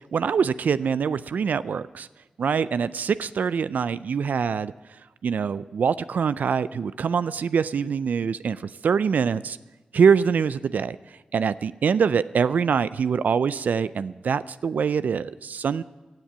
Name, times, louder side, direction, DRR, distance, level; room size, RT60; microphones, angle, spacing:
voice 1, 0.1-2.1 2.4-4.7 5.2-9.6 9.9-11.0 11.3-15.8, right 6 dB, 80° right, 16 dB, 0.3 m, -24 dB
15.5 x 7.4 x 8.8 m, 1.2 s
cardioid pair, 45°, 3 cm